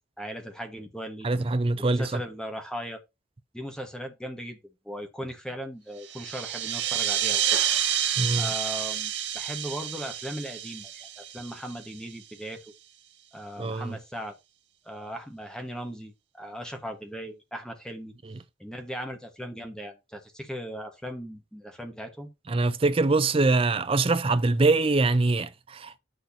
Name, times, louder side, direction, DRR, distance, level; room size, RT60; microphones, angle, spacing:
voice 1, 0.2-1.5 1.8-3.0 3.5-4.6 4.8-7.6 8.3-12.6 13.3-14.3 14.8-18.1 18.6-22.3, equal, 5° left, 1.4 m, -38 dB
voice 2, 1.2-2.2 8.2-8.5 13.6-14.0 22.5-25.9, right 3 dB, 30° right, 0.4 m, -23 dB
sound 1, 6.0-12.2, right 10 dB, 65° right, 1.4 m, -29 dB
7.7 x 6.4 x 2.8 m
head